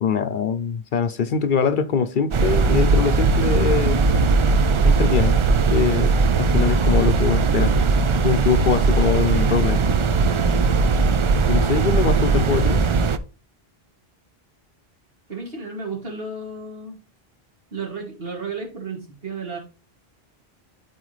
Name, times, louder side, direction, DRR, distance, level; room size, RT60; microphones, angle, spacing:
voice 1, 0.0-4.0 4.8-5.4 5.7-7.7 8.2-9.8 11.5-12.8, left 6 dB, 60° left, 0.7 m, -23 dB
sound 1, 2.3-13.2, right 4 dB, 50° right, 0.4 m, -19 dB
voice 2, 15.3-17.0 17.7-19.6, right 4 dB, 70° right, 2.6 m, -33 dB
12.5 x 4.2 x 3.2 m
omnidirectional pair, 1.0 m